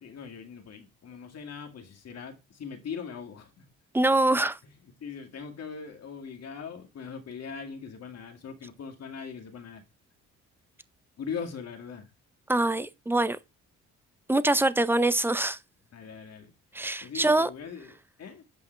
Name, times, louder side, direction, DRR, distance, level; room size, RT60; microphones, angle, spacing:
voice 1, 0.0-3.6 4.8-9.8 11.2-12.1 15.9-16.5 17.0-18.4, left 6 dB, 55° left, 2.2 m, -40 dB
voice 2, 3.9-4.6 12.5-13.4 14.3-15.6 16.7-17.5, right 2 dB, 5° right, 0.6 m, -24 dB
8.2 x 5.5 x 3.3 m
cardioid pair, 90°, 30 cm